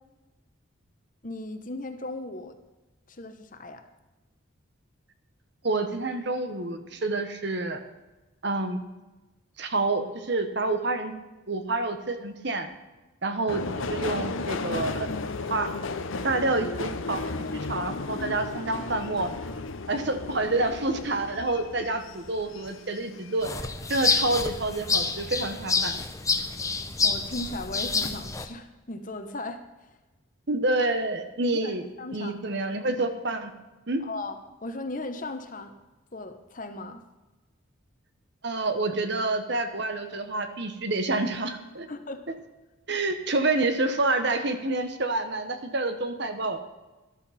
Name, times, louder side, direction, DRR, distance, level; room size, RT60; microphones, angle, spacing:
voice 1, 1.2-2.5 3.1-3.8 21.8-21.9 27.0-30.0 31.5-31.7 32.0-32.6 34.0-35.7 36.1-37.0 41.9-42.3, left 2 dB, 40° left, 8 dB, 1.0 m, -37 dB
voice 2, 5.6-7.8 8.4-8.8 9.6-11.1 11.5-12.7 13.2-13.6 13.9-15.1 15.5-15.7 16.2-17.2 17.5-19.3 19.9-23.5 23.9-25.9 30.5-31.8 32.1-33.5 33.9-34.0 38.4-41.9 42.9-46.6, right 2 dB, 55° right, 8 dB, 1.2 m, -28 dB
Subway metro underground, 13.5-24.2 24.6-25.3 25.5-25.7, left 3 dB, 75° left, 0.8 m, -35 dB
sound 1, 23.4-28.4, left 4 dB, 15° left, 0.7 m, -28 dB
13.5 x 12.0 x 4.2 m, 1.1 s
head